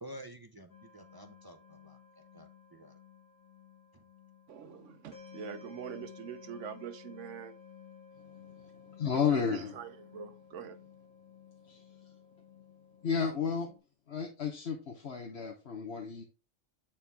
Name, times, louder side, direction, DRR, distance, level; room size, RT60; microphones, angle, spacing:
voice 1, 0.0-3.0 3.9-4.0, right 1 dB, 25° right, 0.5 m, -50 dB
sound 1, 0.7-13.8, left 7 dB, 85° left, 2.7 m, -55 dB
voice 2, 4.5-7.6 9.1-10.8, right 7 dB, 70° right, 1.0 m, -44 dB
voice 3, 9.0-9.7 11.7-11.8 13.0-13.7 14.1-16.2, left 6 dB, 55° left, 1.2 m, -32 dB
8.7 x 4.4 x 3.5 m
omnidirectional pair, 1.3 m